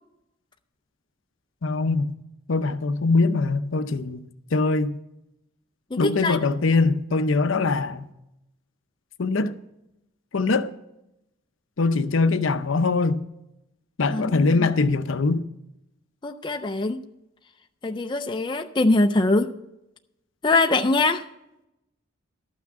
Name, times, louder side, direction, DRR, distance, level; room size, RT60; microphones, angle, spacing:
voice 1, 1.6-2.1 2.5-4.2 4.5-5.0 6.0-8.1 9.2-9.6 10.3-10.7 11.8-13.2 14.0-15.4, left 3 dB, 70° left, 0.6 m, -22 dB
voice 2, 5.9-6.4 14.1-14.7 16.2-17.0 17.8-19.5 20.4-21.2, left 2 dB, 20° left, 0.4 m, -23 dB
12.5 x 6.0 x 7.3 m
head